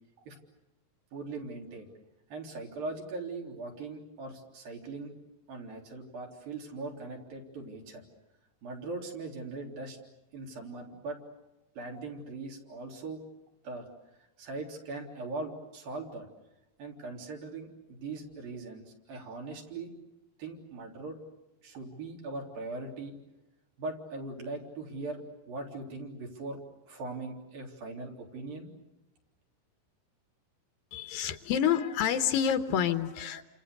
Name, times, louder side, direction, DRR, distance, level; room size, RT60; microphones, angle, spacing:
voice 1, 1.1-1.9 2.3-5.1 5.5-8.0 8.6-10.0 10.3-11.2 11.8-13.2 13.6-13.9 14.4-16.3 16.8-19.9 20.4-21.2 21.6-23.2 23.8-26.6 26.9-28.7, right 3 dB, 80° right, 0 dB, 5.3 m, -40 dB
voice 2, 30.9-33.4, left 9 dB, 85° left, 9 dB, 3.0 m, -28 dB
29.5 x 27.5 x 6.8 m, 1.0 s
omnidirectional pair, 4.0 m